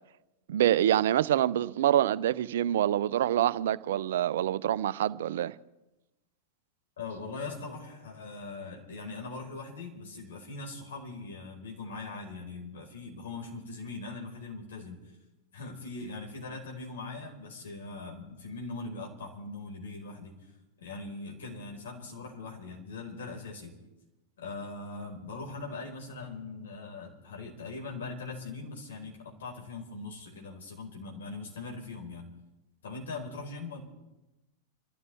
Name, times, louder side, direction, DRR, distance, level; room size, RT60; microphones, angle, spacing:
voice 1, 0.5-5.5, right 11 dB, 65° right, 0.5 m, -26 dB
voice 2, 7.0-15.1 15.5-20.3 20.8-23.7 24.4-32.3 32.8-33.8, left 3 dB, 70° left, 4.5 m, -41 dB
29.0 x 13.5 x 3.5 m
figure-of-eight pair, 95°, 0 cm